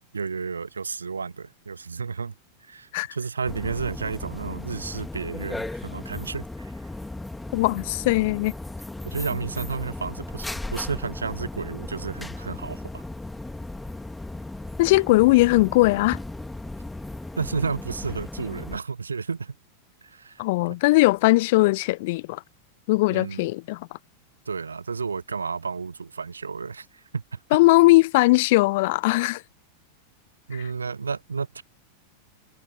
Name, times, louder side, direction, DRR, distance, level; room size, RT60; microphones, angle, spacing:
voice 1, 0.1-2.3 2.6-6.7 9.0-13.0 17.4-19.5 20.0-20.4 23.1-23.4 24.5-27.2 30.5-31.6, right 5 dB, 75° right, 1.4 m, -32 dB
sound 1, 3.5-18.8, left 2 dB, 5° left, 2.3 m, -36 dB
voice 2, 7.5-8.5 14.8-16.2 20.4-22.4 22.9-23.9 27.5-29.4, left 21 dB, 50° left, 0.6 m, -19 dB
figure-of-eight pair, 90°, 0 cm